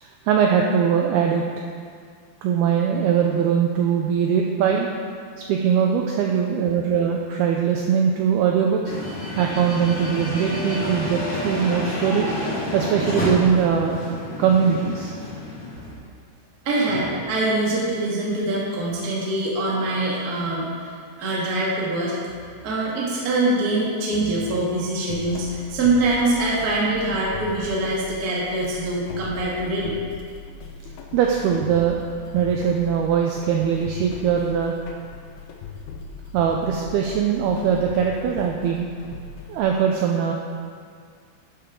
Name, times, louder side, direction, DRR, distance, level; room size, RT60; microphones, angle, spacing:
voice 1, 0.0-1.7 2.4-4.9 5.5-8.8 9.4-12.3 12.7-14.0 14.4-15.1 31.1-32.0 32.3-34.7 36.3-38.9 39.5-40.3, right 7 dB, 85° right, 1 dB, 2.2 m, -21 dB
sound 1, 8.8-15.9, left 1 dB, 40° left, 2.1 m, -29 dB
voice 2, 16.6-22.1 22.6-30.0, right 2 dB, 55° right, -5 dB, 1.0 m, -24 dB
sound 2, 25.1-39.6, left 4 dB, 90° left, 3.1 m, -39 dB
12.0 x 9.0 x 3.7 m, 2.2 s
omnidirectional pair, 5.2 m